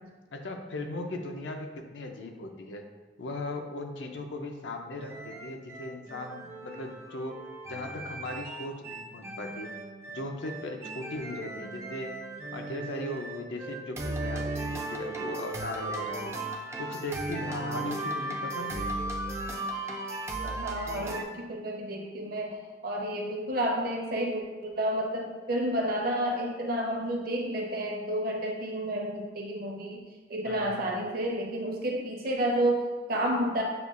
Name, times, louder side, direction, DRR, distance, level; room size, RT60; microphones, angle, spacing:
voice 1, 0.3-2.8 3.2-9.7 10.1-12.2 12.5-16.4 16.8-18.9 30.5-30.8, left 2 dB, 85° left, 4 dB, 0.5 m, -38 dB
sound 1, 5.0-21.2, right 2 dB, 15° right, 0.3 m, -36 dB
voice 2, 20.4-30.0 30.3-33.6, right 1 dB, 55° right, 0 dB, 0.7 m, -30 dB
6.7 x 2.3 x 2.4 m, 1.3 s
head